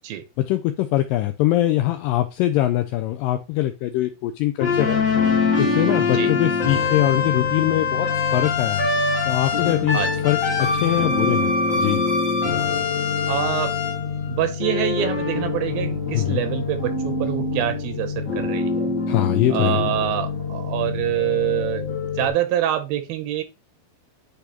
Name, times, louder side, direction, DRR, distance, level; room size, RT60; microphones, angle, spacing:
voice 1, 0.4-5.0 5.6-8.9 9.3-12.1 16.1-16.4 19.1-19.8, left 14 dB, 85° left, 7 dB, 2.0 m, -23 dB
sound 1, 4.6-22.3, left 4 dB, 60° left, 0.8 m, -24 dB
voice 2, 9.9-10.3 13.3-13.7 14.3-19.0 19.5-23.4, right 12 dB, 80° right, 9 dB, 2.4 m, -26 dB
10.0 x 3.5 x 2.9 m, 0.26 s
omnidirectional pair, 4.5 m